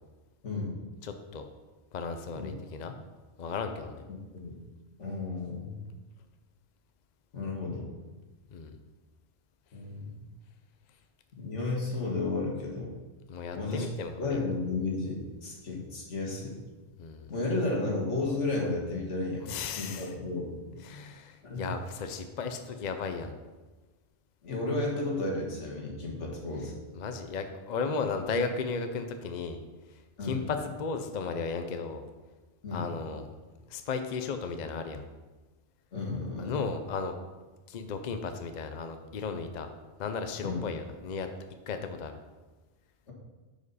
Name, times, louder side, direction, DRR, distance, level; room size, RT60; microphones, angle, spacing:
voice 1, 0.4-0.8 2.3-2.5 4.3-4.6 5.0-5.9 7.3-7.9 9.7-10.2 11.4-12.9 13.5-13.9 14.2-16.5 17.3-19.4 19.8-20.6 21.4-21.7 24.4-26.8 30.2-30.4 32.6-32.9 35.9-36.6 40.4-40.6, left 3 dB, 80° left, -2 dB, 2.0 m, -33 dB
voice 2, 1.0-1.5 1.9-3.0 3.4-4.0 8.5-8.8 13.3-14.4 17.0-17.3 19.4-20.1 20.8-23.3 26.9-29.6 29.9-32.0 32.7-33.3 33.7-35.0 36.4-37.1 37.7-39.7 40.0-41.3 41.7-42.1, left 4 dB, 45° left, 7 dB, 0.6 m, -35 dB
9.6 x 5.1 x 4.1 m, 1.2 s
omnidirectional pair, 1.2 m